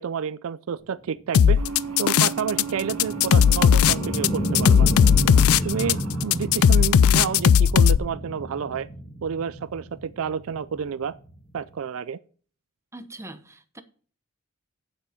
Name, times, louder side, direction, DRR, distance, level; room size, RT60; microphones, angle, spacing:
voice 1, 0.0-1.6 2.0-4.9 5.6-8.9 9.2-11.1 11.5-12.2, right 7 dB, 70° right, 0.4 m, -30 dB
sound 1, 1.0-11.7, right 1 dB, 5° left, 2.6 m, -31 dB
sound 2, 1.3-2.6 2.9-8.0, left 8 dB, 70° left, 0.4 m, -16 dB
sound 3, 1.6-7.9, right 4 dB, 85° right, 1.7 m, -37 dB
voice 2, 12.9-13.8, right 2 dB, 15° right, 0.9 m, -42 dB
8.4 x 7.7 x 5.1 m
head